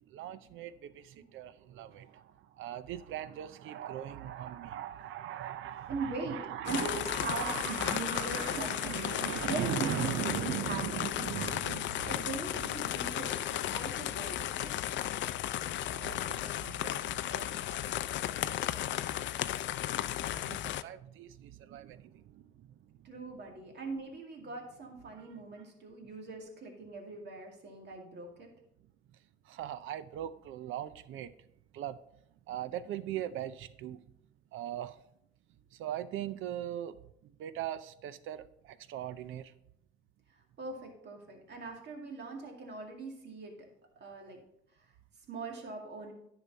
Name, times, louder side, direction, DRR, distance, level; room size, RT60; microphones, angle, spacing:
voice 1, 0.0-12.4 12.8-13.1 14.8-19.0 19.3-23.1 23.7-23.8 25.1-25.4 29.5-31.3 31.7-32.0 32.5-34.0 34.5-35.0 35.7-37.0 37.2-39.5, right 11 dB, 85° right, 0.6 m, -40 dB
voice 2, 5.9-10.8 11.1-11.6 12.1-14.7 23.0-28.5 40.6-43.5 44.0-44.4 45.3-46.1, right 3 dB, 60° right, 2.2 m, -41 dB
sound 1, 6.7-20.8, left 12 dB, 65° left, 0.4 m, -34 dB
10.0 x 6.0 x 4.0 m
cardioid pair, 90°, 20 cm